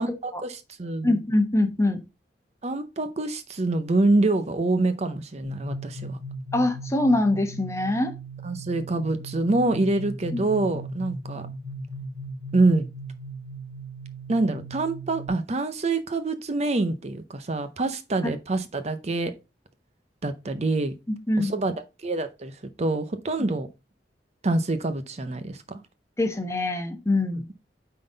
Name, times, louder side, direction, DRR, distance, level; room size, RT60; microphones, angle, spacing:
voice 1, 0.0-1.2 2.6-6.2 8.4-11.5 12.5-12.9 14.3-19.3 20.2-20.9 21.4-21.7 22.0-23.7 24.4-25.8, right 2 dB, 40° right, 0.6 m, -26 dB
voice 2, 1.0-2.0 6.5-8.1 10.3-10.4 21.1-21.5 26.2-27.5, left 2 dB, 15° left, 1.0 m, -23 dB
sound 1, 5.4-15.3, right 2 dB, 10° right, 2.0 m, -38 dB
9.2 x 3.9 x 3.9 m
head